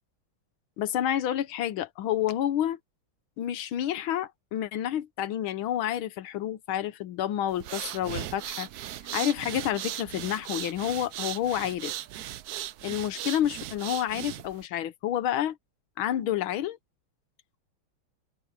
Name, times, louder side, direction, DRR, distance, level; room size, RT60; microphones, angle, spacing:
voice 1, 0.8-2.8 3.4-8.7 9.1-11.9 12.8-15.6 16.0-16.8, left 11 dB, 80° left, 1.7 m, -29 dB
sound 1, 7.5-14.6, right 13 dB, 70° right, 0.9 m, -38 dB
open air
omnidirectional pair, 2.2 m